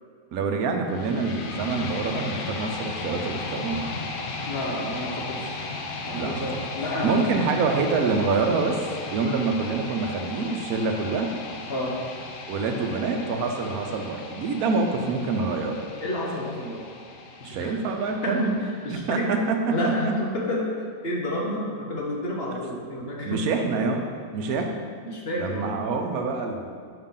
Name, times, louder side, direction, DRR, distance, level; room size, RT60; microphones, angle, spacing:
voice 1, 0.3-4.1 6.1-6.4 7.0-8.8 9.1-11.3 12.5-15.8 17.4-18.6 18.9-19.6 20.0-20.1 23.2-24.0 24.3-24.7 25.4-26.7, right 4 dB, 90° right, 4 dB, 1.2 m, -26 dB
sound 1, 0.9-18.9, left 3 dB, 65° left, 0.5 m, -36 dB
voice 2, 4.5-5.5 6.1-7.3 9.3-9.4 11.7-11.9 16.0-16.8 17.4-17.7 18.2-19.3 19.7-23.6 24.5-24.6 25.0-25.8, left 1 dB, 45° left, -3 dB, 1.1 m, -30 dB
5.7 x 5.6 x 3.7 m, 2.1 s
omnidirectional pair, 1.5 m